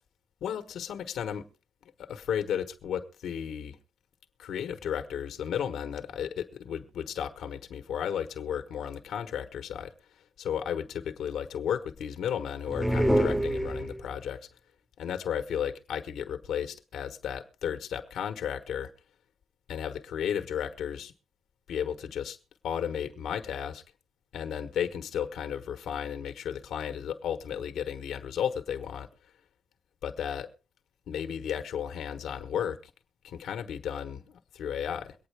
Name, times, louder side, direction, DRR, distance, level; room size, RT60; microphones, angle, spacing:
voice 1, 0.4-1.5 2.0-3.8 4.4-9.9 10.4-14.5 15.0-18.9 19.7-21.1 21.7-22.4 22.6-23.8 24.3-29.1 30.0-30.5 31.1-32.8 33.2-35.1, left 8 dB, 80° left, 1.3 m, -34 dB
sound 1, 12.7-14.2, equal, 5° right, 0.7 m, -26 dB
23.0 x 9.3 x 3.4 m
wide cardioid pair, 150°, 0 cm